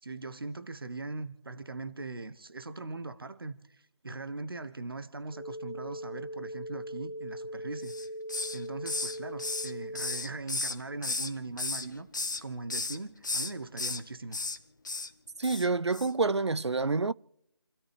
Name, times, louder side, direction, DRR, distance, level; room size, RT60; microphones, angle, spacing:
voice 1, 0.0-8.1 8.5-12.1 12.4-14.5, right 3 dB, 55° right, 1.1 m, -40 dB
sound 1, 5.3-10.3, equal, 80° left, 2.1 m, -40 dB
Hiss, 7.8-8.6 8.9-11.3 11.6-12.4 12.7-13.0 13.2-14.0 14.3-14.6 14.8-15.1 15.4-15.7 15.9-16.1, left 3 dB, 45° left, 1.0 m, -34 dB
voice 2, 15.4-17.1, right 3 dB, 75° right, 0.5 m, -27 dB
29.5 x 13.5 x 3.4 m
figure-of-eight pair, 165°, 14 cm